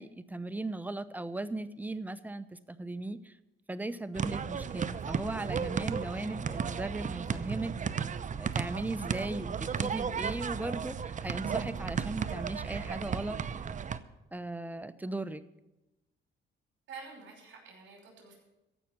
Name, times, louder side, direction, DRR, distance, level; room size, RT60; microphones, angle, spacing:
voice 1, 0.0-3.3 3.7-7.7 8.4-13.4 14.3-15.4, right 2 dB, 10° right, 13 dB, 0.7 m, -37 dB
sound 1, 4.1-14.0, right 6 dB, 40° right, 0.7 m, -34 dB
voice 2, 16.9-18.3, right 4 dB, 65° right, 0 dB, 5.8 m, -48 dB
15.0 x 5.8 x 9.7 m, 0.97 s
cardioid pair, 90°, 20 cm